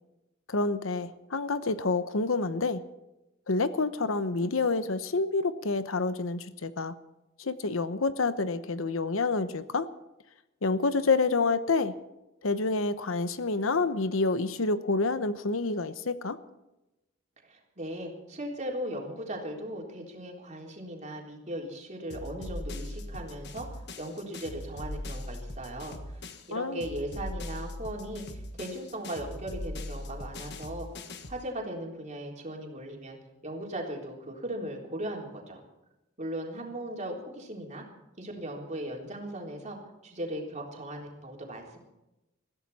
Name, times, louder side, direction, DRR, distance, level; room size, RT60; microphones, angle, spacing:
voice 1, 0.5-2.8 3.5-6.9 7.4-9.9 10.6-11.9 12.4-16.4 26.5-26.8, left 3 dB, 75° left, 13 dB, 1.0 m, -28 dB
voice 2, 17.4-26.2 26.5-30.9 31.3-33.2 33.4-35.6 36.2-37.8 38.2-39.8 40.0-41.8, right 1 dB, 35° right, 0 dB, 3.7 m, -38 dB
sound 1, 22.1-26.5 26.8-31.4, left 1 dB, 55° left, 1.6 m, -40 dB
22.0 x 15.0 x 4.3 m, 0.97 s
head